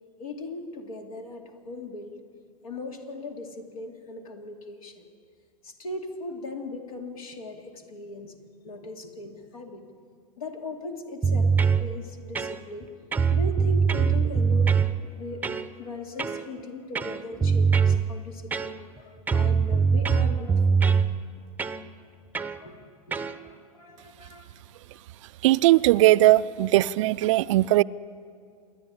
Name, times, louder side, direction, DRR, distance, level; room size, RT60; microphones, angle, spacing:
voice 1, 0.2-2.2 2.6-5.0 5.6-8.4 8.6-9.8 10.4-12.9 13.3-14.8 15.1-15.5 15.8-20.8 21.8-21.9 22.5-24.6 26.8-26.9 27.4-27.5, left 2 dB, 70° left, 4 dB, 2.6 m, -39 dB
sound 1, 11.2-11.8 12.3-12.8 13.1-14.9 15.4-15.7 16.2-16.5 16.9-18.0 18.5-19.0 19.3-21.1 21.6-21.8 22.3-22.6 23.1-23.3, right 6 dB, 10° right, 0.7 m, -22 dB
voice 2, 25.4-27.8, right 16 dB, 55° right, 17 dB, 0.5 m, -19 dB
27.5 x 10.5 x 10.0 m, 2.2 s
figure-of-eight pair, 90°, 19 cm